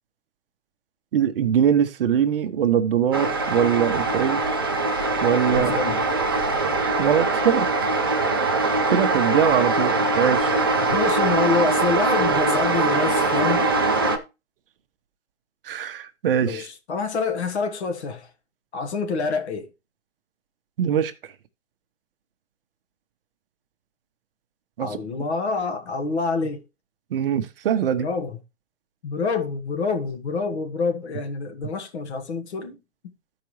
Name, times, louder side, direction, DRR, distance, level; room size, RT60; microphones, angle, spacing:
voice 1, 1.1-4.4 5.2-5.7 6.8-7.7 8.6-10.5 15.6-16.7 20.8-21.1 24.8-24.9 25.2-25.3 27.1-28.1, right 8 dB, 50° right, 0.8 m, -22 dB
sound 1, 3.1-14.2, right 3 dB, 20° right, 0.3 m, -22 dB
voice 2, 5.5-6.0 10.9-13.7 16.4-18.3 18.7-19.7 24.8-26.6 28.0-28.4 29.0-32.8, left 4 dB, 60° left, 1.4 m, -27 dB
13.5 x 4.8 x 3.1 m
hypercardioid pair, 150°, 37 cm